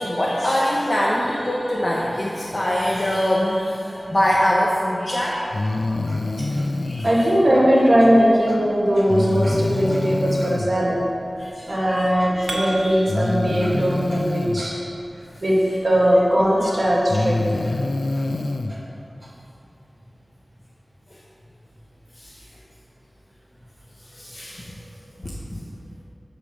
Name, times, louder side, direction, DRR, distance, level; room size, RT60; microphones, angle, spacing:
voice 1, 0.0-6.6 6.8-7.1 9.2-9.3 9.9-10.0 11.4-12.1 12.3-12.5 12.7-12.9 16.6-16.7 22.2-22.4 24.1-24.8 25.2-25.7, equal, 40° left, -5 dB, 0.9 m, -24 dB
Breathing, 5.5-7.1 9.1-10.7 12.1-12.2 13.1-14.6 16.2-16.3 16.9-18.7, left 2 dB, 75° left, 0.4 m, -25 dB
voice 2, 7.0-11.0 11.7-14.8 15.4-17.7 18.1-18.2 18.7-18.8, equal, 45° right, -5 dB, 2.0 m, -19 dB
sound 1, 12.5-13.5, right 2 dB, 80° right, 1.0 m, -33 dB
7.1 x 5.0 x 6.1 m, 2.6 s
wide cardioid pair, 60°, 0 cm